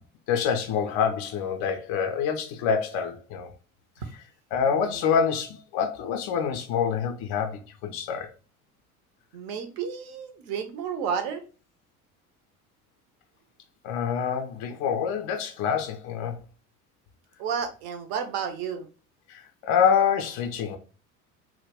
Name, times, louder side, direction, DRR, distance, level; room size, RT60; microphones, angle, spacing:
voice 1, 0.3-3.5 4.5-8.3 13.8-16.4 19.3-20.8, left 7 dB, 35° left, 0.4 m, -26 dB
voice 2, 4.7-5.1 9.3-11.4 17.4-18.9, right 7 dB, 45° right, 0.6 m, -32 dB
2.2 x 2.1 x 3.3 m
figure-of-eight pair, 70°, 44 cm